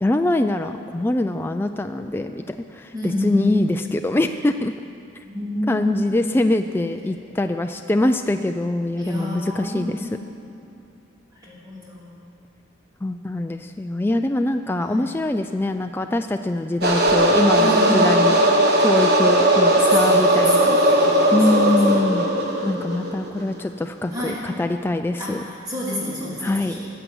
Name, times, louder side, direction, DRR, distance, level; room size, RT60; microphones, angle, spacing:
voice 1, 0.0-4.7 5.7-10.0 13.0-18.4 18.8-20.8 21.3-22.3 22.6-25.4 26.4-26.7, left 1 dB, 10° left, 6 dB, 0.3 m, -23 dB
voice 2, 2.9-3.9 5.3-6.1 7.3-7.4 8.9-10.5 11.4-12.1 14.8-15.1 17.6-18.0 19.9-21.4 22.7-23.2 24.1-24.4 25.2-26.9, left 1 dB, 20° right, -6 dB, 3.1 m, -30 dB
sound 1, 16.8-23.4, right 1 dB, 55° right, 1.4 m, -18 dB
15.0 x 8.1 x 7.9 m, 2.5 s
head